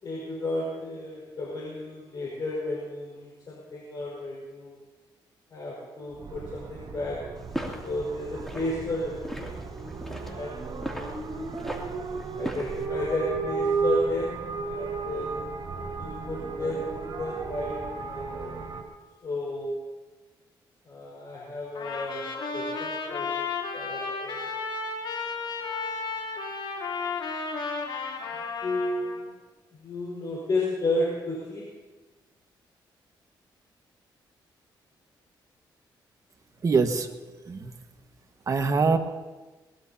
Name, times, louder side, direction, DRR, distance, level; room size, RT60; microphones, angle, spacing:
voice 1, 0.0-4.8 5.5-7.3 7.8-9.6 10.2-11.5 12.3-15.3 16.0-18.5 19.2-19.8 20.8-24.5 28.6-29.3 29.8-31.7, left 1 dB, 50° left, -4 dB, 5.1 m, -33 dB
sound 1, 6.1-18.8, right 4 dB, 75° right, 2.9 m, -34 dB
sound 2, 7.3-12.9, equal, 5° left, 2.8 m, -39 dB
Trumpet, 21.8-29.2, left 4 dB, 75° left, 3.4 m, -33 dB
voice 2, 36.6-37.1 37.4-37.7 38.5-39.0, right 4 dB, 40° right, 5 dB, 1.6 m, -23 dB
22.0 x 20.5 x 2.9 m, 1.3 s
cardioid pair, 95°, 8 cm